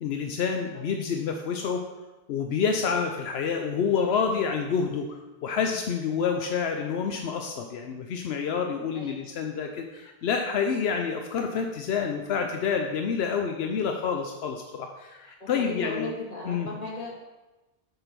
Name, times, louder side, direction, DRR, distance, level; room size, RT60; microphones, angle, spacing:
voice 1, 0.0-1.8 2.3-16.1 16.5-16.7, left 6 dB, 80° left, 4 dB, 0.9 m, -28 dB
voice 2, 8.9-9.3 15.4-17.2, left 2 dB, 40° left, -4 dB, 2.0 m, -36 dB
7.7 x 4.5 x 5.2 m, 1.1 s
omnidirectional pair, 1.0 m